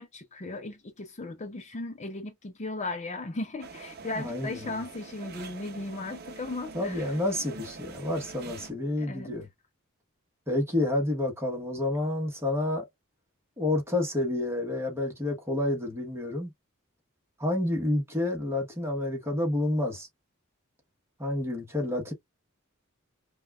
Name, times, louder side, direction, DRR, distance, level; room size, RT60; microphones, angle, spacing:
voice 1, 0.0-7.1 9.0-9.4, left 2 dB, 35° left, 0.5 m, -37 dB
sound 1, 3.6-8.7, right 4 dB, 45° right, 0.7 m, -45 dB
voice 2, 4.1-4.8 6.7-9.5 10.5-12.9 13.6-16.5 17.4-20.1 21.2-22.1, left 1 dB, 10° right, 1.2 m, -29 dB
5.3 x 2.3 x 2.4 m
head